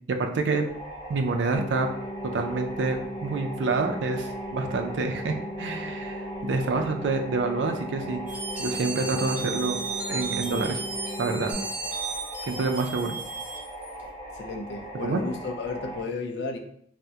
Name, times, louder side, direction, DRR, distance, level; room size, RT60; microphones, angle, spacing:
voice 1, 0.1-0.7 1.1-1.9 2.2-8.2 8.6-10.8 11.2-11.5 12.4-13.2 15.0-15.2, right 3 dB, 80° right, 4 dB, 0.4 m, -27 dB
sound 1, 0.6-16.0, right 1 dB, 25° left, 1.5 m, -40 dB
sound 2, 1.5-11.5, equal, 10° left, 1.4 m, -37 dB
sound 3, 8.3-14.0, right 4 dB, 10° right, 0.4 m, -34 dB
voice 2, 14.3-16.6, left 3 dB, 65° left, 4 dB, 0.4 m, -33 dB
3.4 x 2.1 x 2.7 m, 0.67 s
head